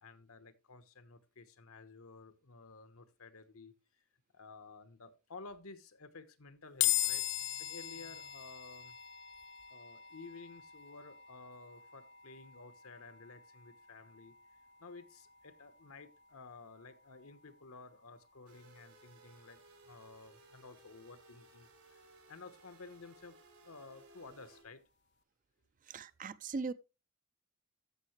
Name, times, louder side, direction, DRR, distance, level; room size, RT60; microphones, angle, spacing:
voice 1, 0.0-3.7 4.3-9.0 9.7-14.3 14.8-19.6 19.8-24.8, left 3 dB, 75° left, 1.1 m, -53 dB
sound 1, 6.8-20.1, left 13 dB, 50° left, 0.5 m, -41 dB
sound 2, 18.5-24.6, right 2 dB, 85° right, 3.2 m, -61 dB
voice 2, 25.9-26.7, right 4 dB, 35° right, 0.4 m, -39 dB
14.0 x 6.5 x 3.2 m
head